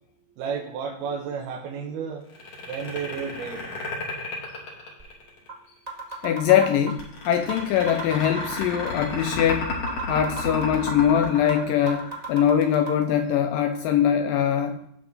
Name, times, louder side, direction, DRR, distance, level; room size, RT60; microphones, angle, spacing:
voice 1, 0.4-2.2 2.6-3.7, right 6 dB, 90° right, 3.0 m, -32 dB
sound 1, 2.3-5.5 6.9-12.4, left 3 dB, 55° left, 4.0 m, -32 dB
sound 2, 5.0-5.1 5.5-5.6 5.9-7.0 7.5-7.6 7.9-9.0 9.5-9.6 9.9-11.0 11.5-11.6 11.9-12.9, right 4 dB, 20° right, 1.0 m, -34 dB
voice 2, 6.2-9.8 10.1-14.8, left 9 dB, 80° left, 2.0 m, -22 dB
18.0 x 6.0 x 4.0 m
omnidirectional pair, 4.4 m